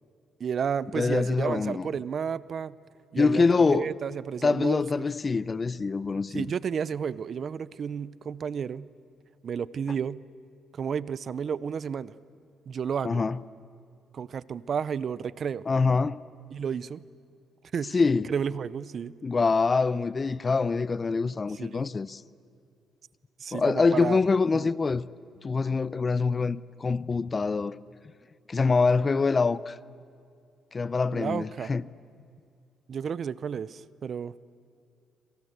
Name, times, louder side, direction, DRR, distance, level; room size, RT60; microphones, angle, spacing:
voice 1, 0.4-2.8 3.1-3.4 3.7-4.8 6.3-8.9 9.4-10.2 10.7-12.1 12.7-13.2 14.1-15.7 16.5-17.0 17.7-17.9 18.3-19.2 21.6-21.9 23.4-24.2 24.5-24.7 31.1-31.7 32.9-34.3, right 7 dB, 55° right, 0.7 m, -32 dB
voice 2, 0.9-1.9 3.2-3.9 4.4-6.5 13.0-13.4 15.7-16.2 17.9-18.3 19.2-22.2 23.5-25.1 25.4-27.8 28.5-29.8 30.7-31.8, left 4 dB, 30° left, 0.7 m, -25 dB
28.0 x 26.5 x 8.1 m
cardioid pair, 90°, 0 cm